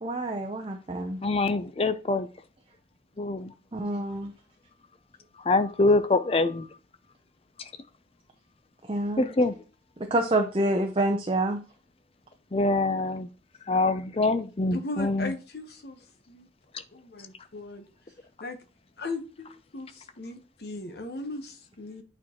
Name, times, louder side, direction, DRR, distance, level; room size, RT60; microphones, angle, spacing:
voice 1, 0.0-1.2 3.7-4.3 8.9-9.3 10.0-11.6, right 1 dB, 30° right, 0.6 m, -27 dB
voice 2, 1.2-2.3 3.2-3.5 5.5-6.7 9.2-9.6 12.5-13.3 13.7-15.3, left 2 dB, 30° left, 0.5 m, -24 dB
voice 3, 14.7-16.0 16.3-16.5 16.9-17.8 18.4-18.6 19.0-22.0, left 2 dB, 60° left, 1.0 m, -37 dB
8.7 x 4.5 x 2.9 m
head